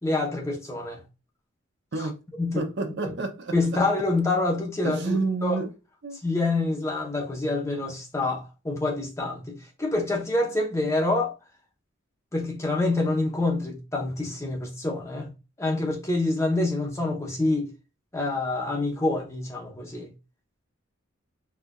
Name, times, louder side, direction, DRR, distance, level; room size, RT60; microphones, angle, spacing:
voice 1, 0.0-1.0 2.0-2.1 2.4-2.6 3.0-3.1 3.5-5.6 6.2-11.3 12.3-15.3 15.6-17.7 18.1-20.1, left 2 dB, 15° left, 0.8 m, -26 dB
voice 2, 2.6-3.5 4.8-5.7 6.0-6.2, right 3 dB, 60° right, 0.6 m, -29 dB
4.3 x 2.4 x 2.2 m
head